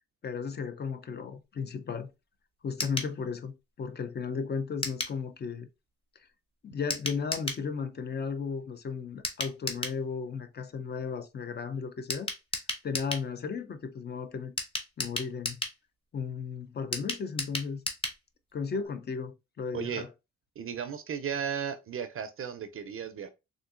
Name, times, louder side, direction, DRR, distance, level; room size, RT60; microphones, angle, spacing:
voice 1, 0.2-2.1 2.6-5.7 6.6-12.3 12.8-14.5 15.0-15.6 16.1-17.8 18.5-20.1, left 5 dB, 35° left, 0.5 m, -35 dB
sound 1, 2.8-3.1 4.8-5.2 6.9-7.6 9.2-10.0 12.1-13.3 14.6-15.8 16.9-18.2 18.5-18.6 18.8-18.9, left 2 dB, 20° left, 0.9 m, -34 dB
voice 2, 20.6-23.3, right 8 dB, 45° right, 0.5 m, -35 dB
3.7 x 2.6 x 2.4 m
cardioid pair, 90°, 30 cm